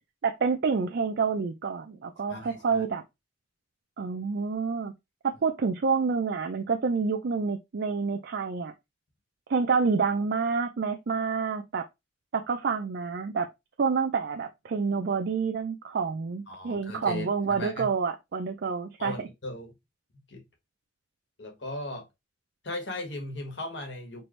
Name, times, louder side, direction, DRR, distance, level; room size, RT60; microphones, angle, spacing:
voice 1, 0.2-3.0 4.0-4.9 5.2-8.7 9.5-11.9 12.3-13.5 13.8-19.3, right 5 dB, 60° right, 0.4 m, -28 dB
voice 2, 2.3-2.8 16.5-17.9 19.0-19.7 20.1-20.4 21.4-22.1 22.6-24.2, left 2 dB, 75° left, 1.6 m, -37 dB
4.6 x 2.5 x 3.2 m
head